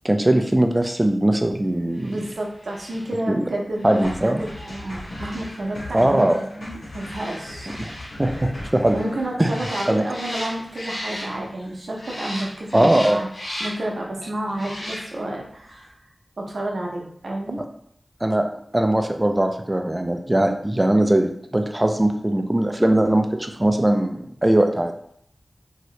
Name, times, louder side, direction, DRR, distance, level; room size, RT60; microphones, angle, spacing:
voice 1, 0.0-2.2 3.3-3.4 3.8-4.4 5.9-6.4 7.8-7.9 8.2-9.0 9.4-9.5 9.9-10.0 12.7-13.2 18.2-18.4 18.7-24.9, right 1 dB, 20° right, 5 dB, 0.4 m, -20 dB
sound 1, 1.9-11.7 12.0-14.0 14.5-15.4 15.7-15.8, left 1 dB, 65° left, 0.9 m, -37 dB
voice 2, 2.0-7.7 8.9-13.3 13.6-15.9 16.4-17.6, right 1 dB, 85° right, -1 dB, 0.7 m, -30 dB
sound 2, 4.0-9.2, left 1 dB, 90° left, 1.1 m, -38 dB
2.8 x 2.7 x 3.1 m, 0.69 s
wide cardioid pair, 70°, 0 cm